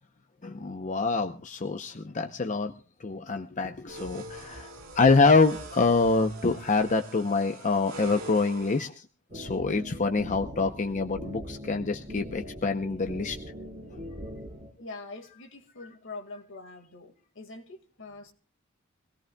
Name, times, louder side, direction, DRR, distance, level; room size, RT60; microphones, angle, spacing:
voice 1, 0.4-2.7 3.0-9.1 9.3-13.4, left 3 dB, 35° left, 0.7 m, -26 dB
sound 1, 3.9-8.9, right 2 dB, 65° right, 3.7 m, -43 dB
sound 2, 9.3-14.7, equal, 35° right, 6.1 m, -41 dB
voice 2, 14.8-18.3, left 3 dB, 65° left, 1.9 m, -44 dB
24.5 x 17.0 x 2.3 m
head